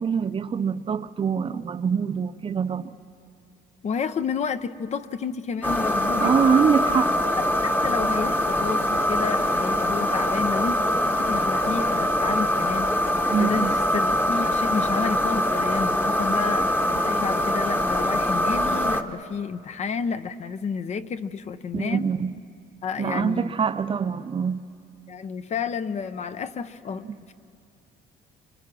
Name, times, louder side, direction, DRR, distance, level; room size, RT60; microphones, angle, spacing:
voice 1, 0.0-2.9 6.2-7.1 13.3-13.8 21.7-22.3 23.0-24.6, right 6 dB, 30° right, 0.6 m, -24 dB
voice 2, 3.8-6.3 7.4-10.8 11.2-22.1 22.8-23.5 25.1-27.3, left 6 dB, 40° left, 0.8 m, -31 dB
sound 1, 5.6-19.0, left 1 dB, 10° left, 1.2 m, -23 dB
30.0 x 25.0 x 6.1 m
cardioid pair, 110°, 17 cm